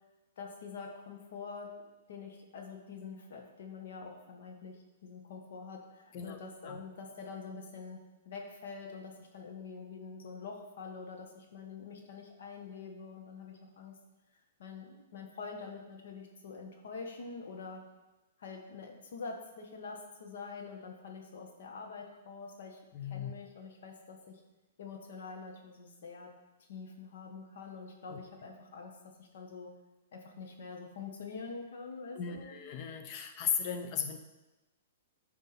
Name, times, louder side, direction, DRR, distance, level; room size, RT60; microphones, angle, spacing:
voice 1, 0.4-1.7 2.1-8.0 8.2-13.9 14.6-17.8 18.4-24.4 24.8-26.3 26.7-28.9 29.2-29.7 30.1-32.6, left 4 dB, 70° left, 2 dB, 1.5 m, -45 dB
voice 2, 22.9-23.3 28.1-28.2 32.1-34.2, left 7 dB, 40° left, 7 dB, 0.9 m, -36 dB
9.1 x 4.7 x 4.4 m, 1.1 s
hypercardioid pair, 135°, 0 cm